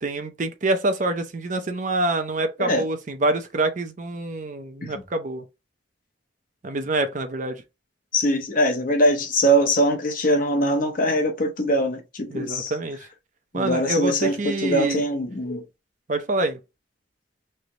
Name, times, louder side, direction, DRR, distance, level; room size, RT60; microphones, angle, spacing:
voice 1, 0.0-5.4 6.6-7.6 12.3-13.0 13.5-15.0 16.1-16.6, right 2 dB, 45° right, 0.6 m, -26 dB
voice 2, 8.1-12.7 13.5-15.6, equal, 50° left, 0.9 m, -22 dB
3.3 x 2.8 x 3.9 m
head